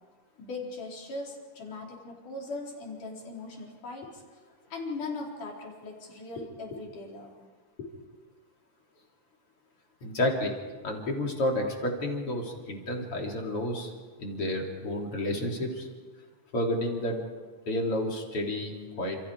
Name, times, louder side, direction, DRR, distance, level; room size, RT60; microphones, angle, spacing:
voice 1, 0.4-4.2 4.7-7.3 7.8-7.9 14.7-15.0, left 3 dB, 75° left, -2 dB, 6.1 m, -39 dB
voice 2, 10.0-10.5 10.8-13.9 14.2-15.9 16.5-17.2 17.7-19.2, left 1 dB, 45° left, 0 dB, 4.3 m, -30 dB
29.5 x 28.5 x 4.9 m, 1.5 s
omnidirectional pair, 3.7 m